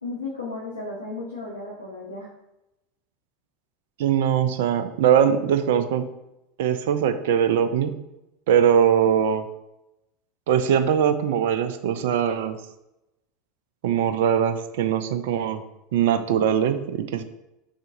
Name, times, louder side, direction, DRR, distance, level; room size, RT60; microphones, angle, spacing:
voice 1, 0.0-2.3, left 3 dB, 85° left, -5 dB, 1.3 m, -34 dB
voice 2, 4.0-6.0 6.6-7.9 8.5-9.5 10.5-12.6 13.8-15.6 15.9-17.2, right 8 dB, 60° right, 10 dB, 0.5 m, -21 dB
6.3 x 5.8 x 2.6 m, 0.91 s
figure-of-eight pair, 80°, 0 cm